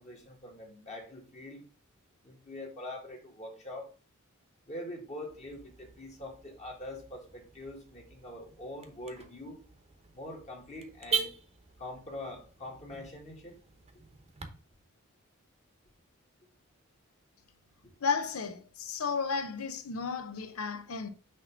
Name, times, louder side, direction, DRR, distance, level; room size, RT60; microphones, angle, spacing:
voice 1, 0.0-1.6 2.2-3.9 4.7-9.6 10.1-11.3 11.8-13.5, left 1 dB, 35° left, 1.5 m, -44 dB
Car / Alarm, 5.3-14.5, right 5 dB, 30° right, 0.8 m, -42 dB
voice 2, 18.0-21.1, left 5 dB, 90° left, 0.7 m, -33 dB
6.2 x 2.9 x 5.7 m
head